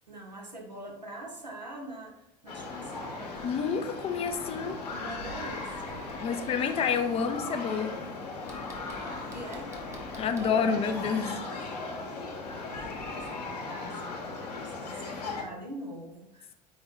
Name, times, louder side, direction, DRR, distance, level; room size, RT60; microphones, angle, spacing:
voice 1, 0.1-3.4 4.5-4.6 4.9-6.6 9.3-9.7 10.0-10.7 11.0-12.1 13.1-16.5, right 1 dB, 85° right, 0 dB, 0.8 m, -44 dB
sound 1, 2.5-15.4, left 3 dB, 65° left, 1.0 m, -38 dB
voice 2, 3.4-4.7 6.2-7.9 10.2-11.4, left 6 dB, 30° left, 8 dB, 0.5 m, -28 dB
Knock, 4.4-6.3 8.5-10.6 12.8-13.3, equal, 15° right, 0.9 m, -50 dB
4.3 x 3.2 x 3.7 m, 0.85 s
figure-of-eight pair, 70°, 21 cm